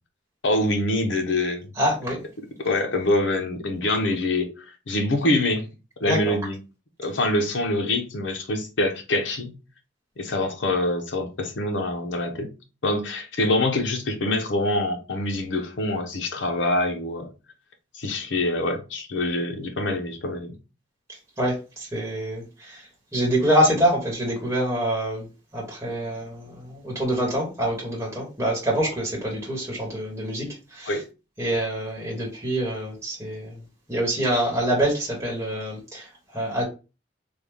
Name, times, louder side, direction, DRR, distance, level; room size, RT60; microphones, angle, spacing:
voice 1, 0.4-1.7 2.6-5.6 6.0-6.6 7.0-9.5 10.2-12.5 12.8-17.3 17.9-20.5 30.9-31.0, left 1 dB, 75° left, 0.8 m, -25 dB
voice 2, 1.8-2.2 6.0-6.4 21.4-25.3 25.5-31.0 31.4-33.6 33.9-36.6, right 1 dB, 15° right, 1.1 m, -26 dB
3.3 x 2.3 x 3.4 m
head